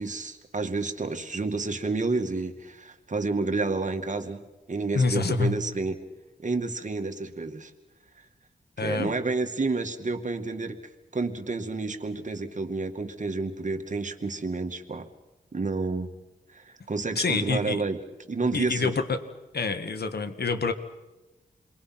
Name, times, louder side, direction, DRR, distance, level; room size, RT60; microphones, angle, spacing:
voice 1, 0.0-4.4 4.7-6.0 6.4-7.7 8.8-10.8 11.1-15.1 15.5-16.1 16.5-18.0 18.3-18.9, right 3 dB, 45° right, 5 dB, 2.2 m, -30 dB
voice 2, 4.9-5.7 8.8-9.1 17.2-17.8 18.5-19.2 19.5-20.7, left 4 dB, 75° left, 9 dB, 1.8 m, -27 dB
29.0 x 22.5 x 6.0 m, 1.1 s
cardioid pair, 65°, 17 cm